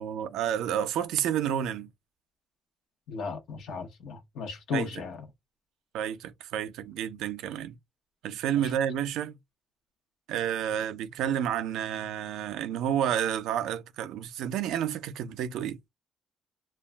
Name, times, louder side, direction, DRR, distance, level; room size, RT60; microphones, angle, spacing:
voice 1, 0.0-1.9 4.7-4.9 5.9-7.7 8.2-9.4 10.3-15.8, right 10 dB, 90° right, 0.4 m, -30 dB
voice 2, 3.1-5.2, left 5 dB, 85° left, 0.7 m, -35 dB
2.2 x 2.1 x 3.2 m
cardioid pair, 90°, 0 cm